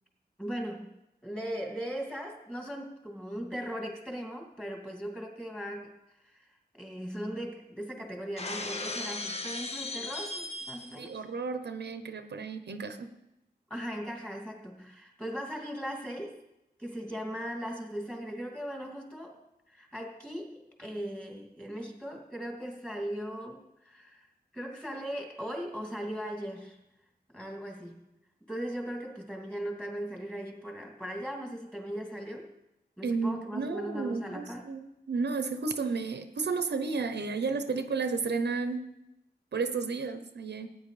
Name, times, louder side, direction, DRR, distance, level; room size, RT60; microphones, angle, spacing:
voice 1, 0.4-0.9 1.2-5.9 6.2-6.5 6.7-11.2 13.7-16.4 16.8-19.4 19.7-24.3 24.5-26.8 27.3-28.1 28.5-32.5 33.0-34.6, equal, 5° left, 0 dB, 2.6 m, -38 dB
Shatter, 8.4-11.1, left 2 dB, 40° left, 0.9 m, -37 dB
voice 2, 11.0-13.1 33.0-38.9 39.5-40.7, right 4 dB, 85° right, 9 dB, 0.9 m, -32 dB
17.5 x 9.5 x 3.3 m, 0.90 s
wide cardioid pair, 100°, 17 cm